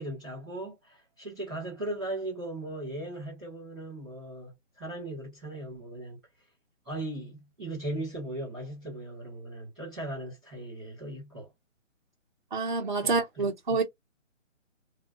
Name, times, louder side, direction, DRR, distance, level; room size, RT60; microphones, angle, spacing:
voice 1, 0.0-6.2 6.8-11.5 13.0-13.8, right 1 dB, ahead, 1.3 m, -38 dB
voice 2, 12.5-13.8, right 4 dB, 40° right, 0.4 m, -27 dB
2.6 x 2.1 x 2.4 m
hypercardioid pair, 175°, 39 cm